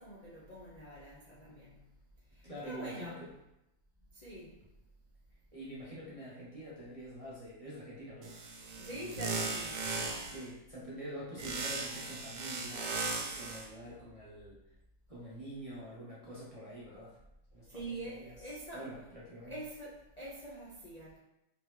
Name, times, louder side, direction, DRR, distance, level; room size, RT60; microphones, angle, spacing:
voice 1, 0.0-1.9 2.2-3.2 4.1-4.7 8.8-10.3 17.6-19.0 19.4-21.2, right 1 dB, 40° left, -7 dB, 0.6 m, -45 dB
voice 2, 2.4-3.3 5.5-8.3 10.3-14.6 15.1-17.2 17.5-18.3 18.7-19.5, right 1 dB, 30° right, -8 dB, 0.8 m, -46 dB
sound 1, 8.2-10.5 11.4-13.7, right 3 dB, 75° right, 1.2 m, -37 dB
3.8 x 3.6 x 3.1 m, 0.88 s
omnidirectional pair, 1.7 m